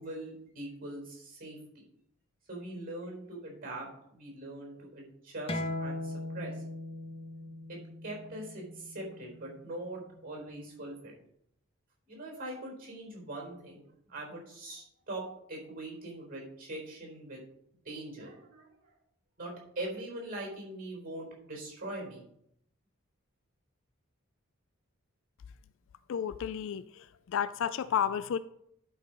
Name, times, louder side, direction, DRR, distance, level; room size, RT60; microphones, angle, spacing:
voice 1, 0.0-1.6 2.5-6.6 7.7-11.1 12.1-17.4 17.8-18.7 19.4-22.3, right 1 dB, 40° right, 4.0 m, -42 dB
sound 1, 5.5-10.7, left 1 dB, 25° left, 1.1 m, -40 dB
voice 2, 26.1-28.4, left 8 dB, 60° left, 0.3 m, -32 dB
11.0 x 4.7 x 5.2 m
head